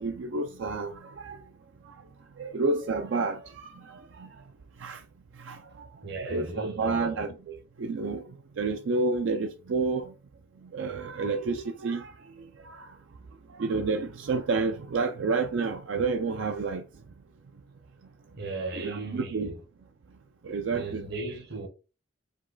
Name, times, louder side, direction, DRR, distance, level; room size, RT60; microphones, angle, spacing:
voice 1, 0.0-1.4 1.9-2.0 2.4-4.4 4.8-5.0 5.4-5.9 6.3-7.3 7.8-10.1 10.6-12.2 12.6-13.0 13.5-16.8 18.7-19.5 20.4-21.1, right 4 dB, 75° right, 0.4 m, -30 dB
voice 2, 6.0-7.6 18.4-19.6 20.7-21.7, right 3 dB, 55° right, 0.9 m, -36 dB
5.1 x 2.3 x 3.9 m
head